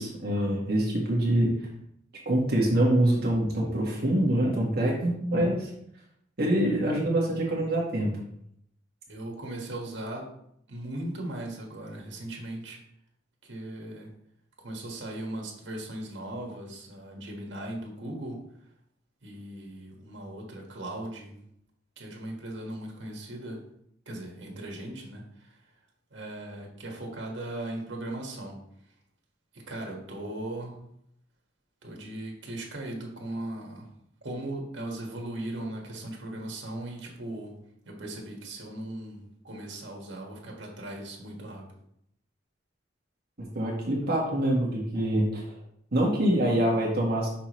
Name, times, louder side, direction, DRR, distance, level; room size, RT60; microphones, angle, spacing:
voice 1, 0.0-1.5 2.2-5.7 6.4-8.1 43.4-45.5 45.9-47.3, right 1 dB, 60° right, -3 dB, 1.5 m, -25 dB
voice 2, 9.1-10.3 10.7-12.8 13.4-14.1 14.6-18.4 19.2-21.4 22.0-23.6 24.0-25.5 26.1-28.6 29.7-30.8 31.8-33.9 34.2-37.5 37.8-41.6, right 1 dB, 85° right, 0 dB, 1.7 m, -38 dB
6.0 x 5.8 x 3.1 m, 0.73 s
head